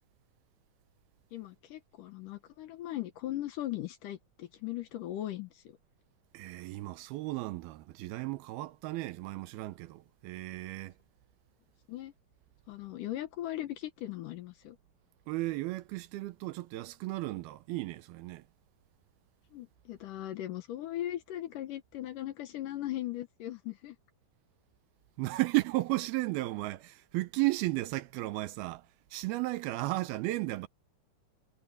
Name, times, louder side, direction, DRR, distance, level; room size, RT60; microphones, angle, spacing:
voice 1, 1.3-5.8 11.9-12.1 12.7-14.8 19.5-24.0, left 14 dB, 70° left, 2.2 m, -39 dB
voice 2, 6.3-10.9 15.3-18.4 25.2-28.8 29.1-30.7, right 19 dB, 80° right, 2.6 m, -34 dB
omnidirectional pair, 4.5 m